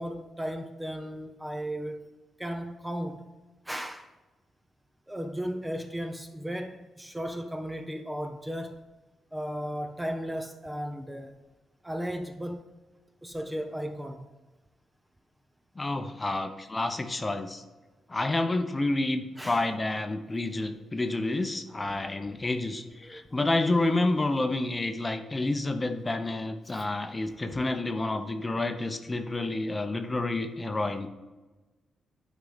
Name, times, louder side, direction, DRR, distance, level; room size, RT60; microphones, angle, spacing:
voice 1, 0.0-2.1 2.4-3.4 3.6-4.1 5.1-8.8 9.3-11.3 11.8-12.6 13.2-14.3 19.4-19.6 23.0-23.2 26.7-26.8 27.5-27.6, equal, 10° right, 0.6 m, -35 dB
voice 2, 15.8-17.6 18.1-31.1, left 2 dB, 20° left, 0.8 m, -29 dB
11.5 x 4.7 x 4.0 m
cardioid pair, 95°, 0 cm